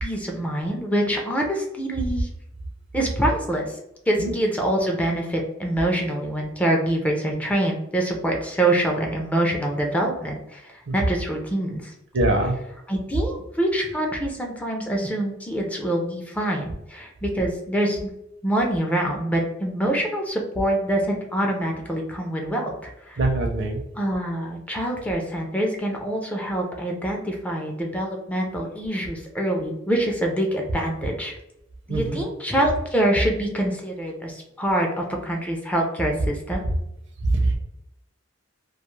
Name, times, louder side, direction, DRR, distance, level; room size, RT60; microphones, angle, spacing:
voice 1, 0.0-2.3 2.9-3.8 4.1-11.9 12.4-12.6 12.9-18.1 18.4-23.2 24.0-31.3 31.9-36.6, right 1 dB, 5° left, 0 dB, 0.3 m, -25 dB
voice 2, 12.1-12.5 23.2-23.8 31.9-32.2 37.3-37.5, right 2 dB, 65° right, 4 dB, 0.5 m, -22 dB
2.3 x 2.3 x 3.0 m, 0.85 s
head